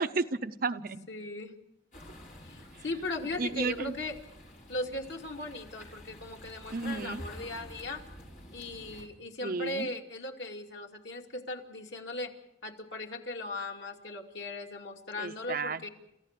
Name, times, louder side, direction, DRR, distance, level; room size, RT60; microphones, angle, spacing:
voice 1, 0.0-1.1 3.4-3.9 6.7-7.2 9.4-9.9 15.2-15.9, right 4 dB, 55° right, 9 dB, 0.7 m, -32 dB
voice 2, 1.1-1.5 2.4-4.2 4.7-8.0 8.5-12.3 12.6-15.9, left 2 dB, 85° left, 1 dB, 2.6 m, -38 dB
sound 1, 1.9-9.0, left 1 dB, 45° left, 5.7 m, -49 dB
29.5 x 14.5 x 6.7 m, 0.85 s
head